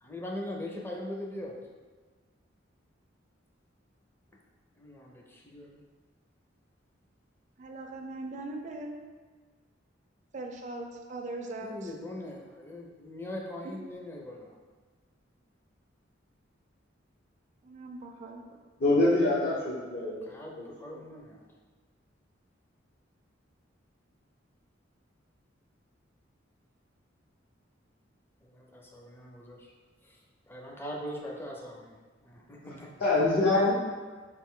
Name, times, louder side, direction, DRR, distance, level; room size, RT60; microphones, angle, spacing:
voice 1, 0.0-1.6 4.8-5.8 11.6-14.5 20.2-21.4 28.4-29.7 30.0-30.2 30.5-32.9, left 1 dB, 10° left, -2 dB, 0.5 m, -41 dB
voice 2, 7.6-9.0 10.3-11.8 17.6-18.6, right 2 dB, 40° right, 1 dB, 0.4 m, -40 dB
voice 3, 18.8-20.3 20.5-20.6 32.6-32.7 33.0-33.7, left 2 dB, 55° left, -8 dB, 0.8 m, -25 dB
4.3 x 2.6 x 3.6 m, 1.4 s
head